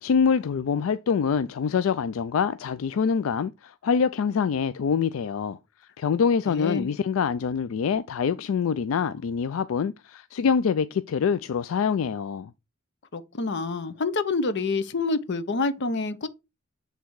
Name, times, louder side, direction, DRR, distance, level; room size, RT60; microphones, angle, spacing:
voice 1, 0.0-5.6 6.0-12.5, left 6 dB, 80° left, 0.4 m, -25 dB
voice 2, 6.5-6.9 13.1-16.3, left 3 dB, 60° left, 0.8 m, -27 dB
8.3 x 3.4 x 4.7 m
head